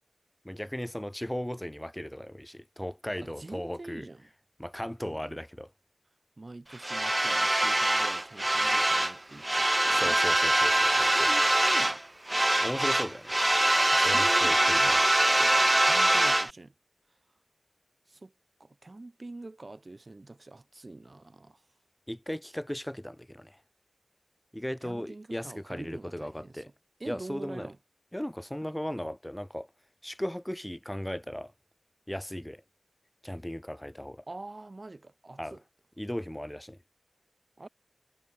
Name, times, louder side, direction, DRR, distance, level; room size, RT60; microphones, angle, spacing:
voice 1, 0.4-4.1 4.6-5.7 9.9-11.3 12.6-13.4 14.0-15.0 22.1-23.6 24.5-26.7 27.1-27.7 28.1-29.7 30.0-31.5 32.1-32.6 33.2-34.2 35.4-35.6 36.0-36.8, equal, 10° left, 7.2 m, -37 dB
voice 2, 3.2-4.3 5.1-5.4 6.4-10.2 10.9-12.0 13.9-15.0 15.4-16.7 18.1-18.3 18.6-21.6 24.8-26.6 27.0-27.8 34.3-35.6 37.6-37.7, right 2 dB, 60° right, 5.1 m, -45 dB
sound 1, 6.8-9.2 9.4-12.0 12.3-16.5, right 1 dB, 30° right, 0.4 m, -24 dB
wide cardioid pair, 45°, 0 cm